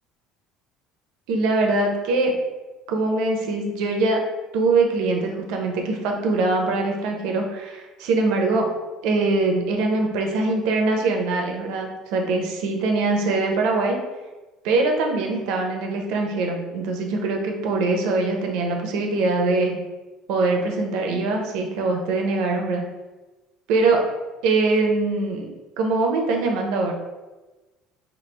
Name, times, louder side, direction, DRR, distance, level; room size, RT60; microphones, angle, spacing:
voice 1, 1.3-2.3 2.9-4.2 4.5-8.7 9.0-14.0 14.6-19.8 20.3-22.8 23.7-24.0 24.4-25.5 25.8-26.9, right 3 dB, 70° right, 2 dB, 0.6 m, -22 dB
3.1 x 2.4 x 3.2 m, 1.1 s
cardioid pair, 170°, 0 cm